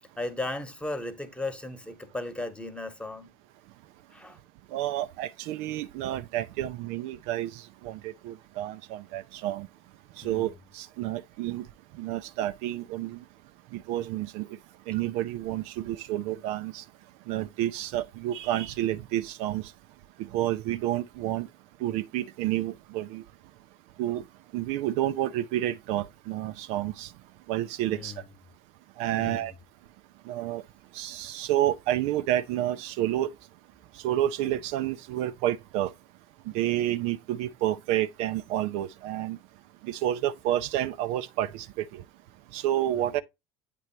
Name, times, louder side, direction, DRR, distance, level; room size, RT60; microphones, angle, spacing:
voice 1, 0.2-3.3 4.1-4.4 10.2-10.5 27.9-28.2 29.1-29.5, left 2 dB, 10° left, 1.2 m, -36 dB
voice 2, 4.7-7.5 7.8-9.7 10.2-11.6 12.0-13.2 13.7-14.5 14.9-16.8 17.3-19.6 20.3-21.5 21.8-23.2 24.0-24.2 24.5-27.1 27.5-28.1 29.0-29.5 30.3-30.6 30.9-33.3 34.0-35.9 36.5-39.4 39.8-41.8 42.5-43.2, right 13 dB, 60° right, 0.4 m, -29 dB
8.3 x 3.0 x 4.4 m
hypercardioid pair, 70°, 13 cm